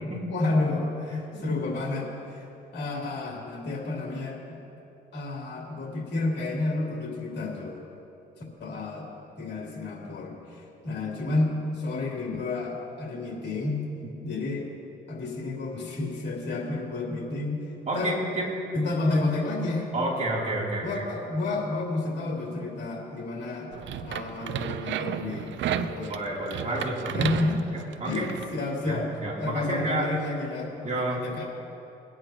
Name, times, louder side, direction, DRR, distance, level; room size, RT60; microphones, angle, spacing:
voice 1, 0.3-2.5 2.7-4.6 5.1-7.8 8.6-9.1 9.4-13.8 14.2-14.7 15.1-17.6 17.9-18.2 18.7-19.9 20.8-23.7 24.0-26.1 27.1-27.7 28.0-28.2 28.5-29.1 29.4-31.5, left 2 dB, 60° left, -3 dB, 3.0 m, -30 dB
voice 2, 17.9-18.5 19.9-21.0 26.1-27.3 27.7-28.3 28.9-30.1 30.8-31.2, right 2 dB, 35° right, -4 dB, 3.1 m, -30 dB
sound 1, 23.7-28.5, right 9 dB, 70° right, 0.6 m, -33 dB
21.5 x 9.6 x 2.9 m, 2.8 s
cardioid pair, 90°, 20 cm